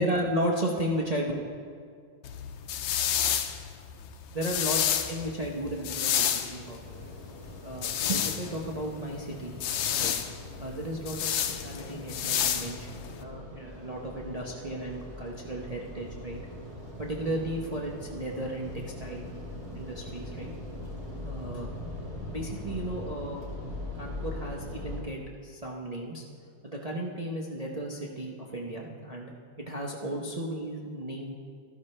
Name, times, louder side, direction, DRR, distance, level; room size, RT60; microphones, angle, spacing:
voice 1, 0.0-1.3 4.3-7.2 7.6-9.6 9.9-10.1 10.6-16.4 17.0-18.7 19.0-19.4 19.7-20.5 21.2-21.7 22.3-23.4 24.0-26.2 26.6-31.3, right 1 dB, 55° right, -2 dB, 0.4 m, -34 dB
sound 1, 2.2-13.2, left 9 dB, 90° left, 1.5 m, -30 dB
sound 2, 6.8-25.0, left 1 dB, 15° right, 2.3 m, -41 dB
13.5 x 12.0 x 3.3 m, 2.2 s
omnidirectional pair, 2.2 m